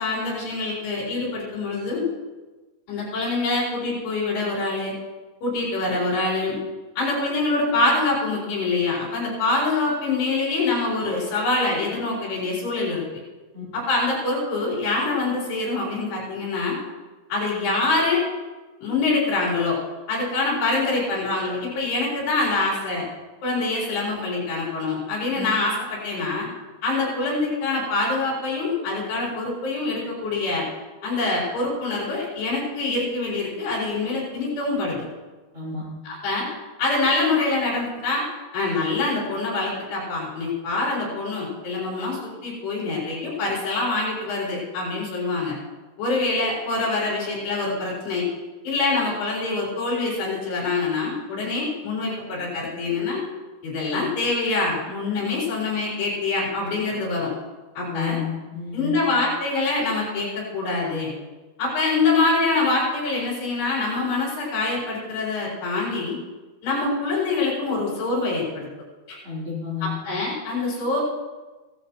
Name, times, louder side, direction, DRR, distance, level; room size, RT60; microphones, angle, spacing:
voice 1, 0.0-2.0 2.9-4.9 5.4-6.6 7.0-13.0 13.7-16.8 17.3-18.2 18.8-19.8 20.1-23.1 23.4-26.5 26.8-30.7 31.0-35.0 36.1-36.5 36.8-38.2 38.5-45.5 46.0-48.3 48.6-53.2 53.6-57.3 57.8-58.2 58.7-61.1 61.6-66.2 66.6-68.7 69.1-69.2 69.8-71.0, left 3 dB, 75° left, -5 dB, 5.7 m, -25 dB
voice 2, 57.9-58.9 69.2-69.9, left 6 dB, 35° right, -6 dB, 3.4 m, -30 dB
16.5 x 13.5 x 2.9 m, 1.2 s
omnidirectional pair, 4.8 m